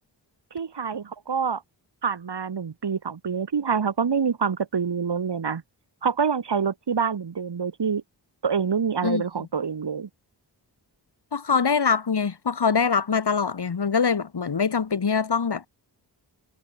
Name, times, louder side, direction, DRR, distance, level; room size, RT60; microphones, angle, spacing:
voice 1, 0.5-1.6 2.0-5.6 6.0-8.0 8.4-10.1, right 6 dB, 75° right, 4.1 m, -26 dB
voice 2, 11.3-15.7, left 5 dB, 70° left, 5.1 m, -23 dB
wide cardioid pair, 105°, 42 cm